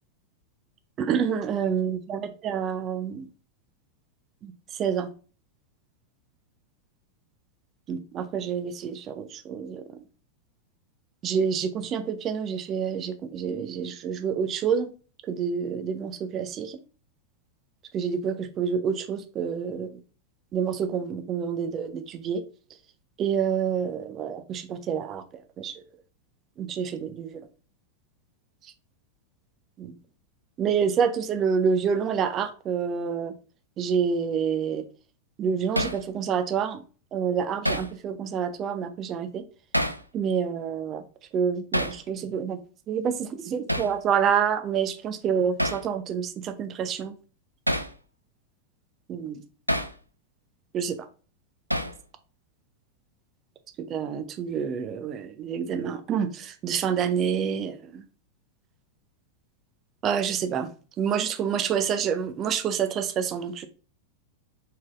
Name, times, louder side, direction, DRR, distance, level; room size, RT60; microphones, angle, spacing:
voice 1, 1.0-3.3 4.4-5.1 7.9-9.8 11.2-14.9 15.2-16.8 17.9-20.0 20.5-22.4 23.2-25.2 25.6-25.7 26.6-27.5 29.8-29.9 30.6-33.3 33.8-34.8 35.4-36.8 37.1-39.4 40.1-41.0 41.3-42.6 42.9-47.1 49.1-49.4 50.7-51.0 53.8-58.0 60.0-60.7 61.0-63.7, right 7 dB, 30° right, 9 dB, 0.7 m, -28 dB
Hammer, 35.8-36.0 37.6-37.9 39.7-40.0 41.7-42.0 43.7-43.9 45.6-45.9 47.7-47.9 49.7-49.9 51.7-52.0, equal, 90° right, 0.4 m, -27 dB
4.7 x 4.2 x 2.5 m, 0.37 s
figure-of-eight pair, 90°, 0 cm